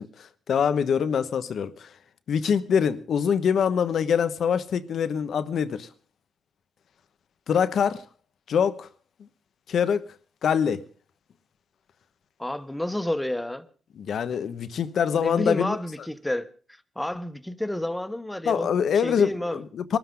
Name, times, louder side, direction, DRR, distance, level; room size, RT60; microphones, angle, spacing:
voice 1, 0.0-1.9 2.3-5.9 7.5-8.0 8.5-8.9 9.7-10.1 10.4-10.8 14.0-15.8 18.4-20.0, left 7 dB, 75° left, 1.0 m, -24 dB
voice 2, 12.4-13.7 15.2-16.5 17.0-18.7 19.0-19.6, left 1 dB, 10° left, 1.1 m, -29 dB
23.5 x 13.0 x 3.8 m
cardioid pair, 85°, 0 cm